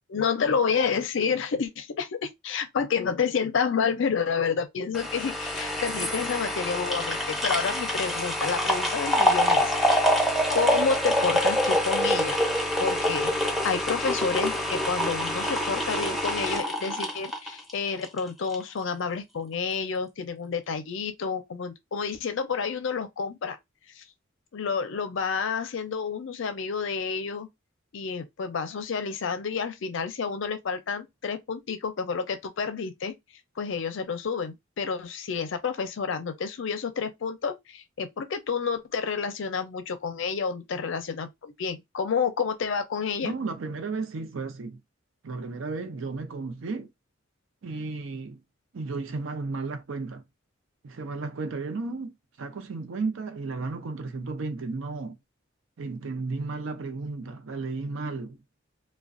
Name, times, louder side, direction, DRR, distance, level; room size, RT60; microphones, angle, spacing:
voice 1, 0.1-9.7 10.5-12.4 12.8-23.6 24.0-24.1 24.5-27.5 27.9-33.1 33.6-43.3, left 5 dB, 65° left, 0.5 m, -29 dB
sound 1, 4.9-18.2 18.5-18.6, equal, ahead, 0.6 m, -26 dB
voice 2, 43.2-44.8 45.2-46.9 47.6-48.4 48.7-50.2 50.8-55.2 55.8-58.4, right 3 dB, 75° right, 0.5 m, -33 dB
2.4 x 2.1 x 2.5 m
head